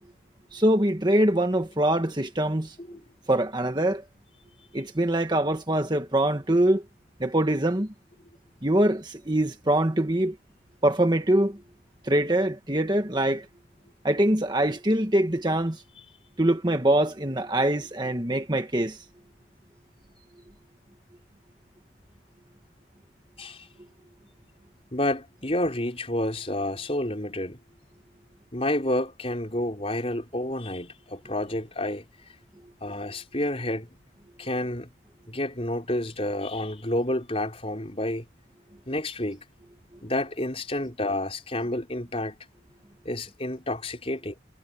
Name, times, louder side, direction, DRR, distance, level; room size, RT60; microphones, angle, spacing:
voice 1, 0.5-2.7 3.3-4.0 4.7-6.8 7.2-7.9 8.6-10.3 10.8-11.6 12.0-13.4 14.0-15.8 16.4-19.0, right 1 dB, 25° right, 1.5 m, -23 dB
voice 2, 24.9-27.6 28.5-32.1 32.8-33.9 34.4-34.9 35.3-38.3 38.9-39.4 40.0-42.4 43.1-44.4, left 1 dB, 30° left, 5.2 m, -29 dB
head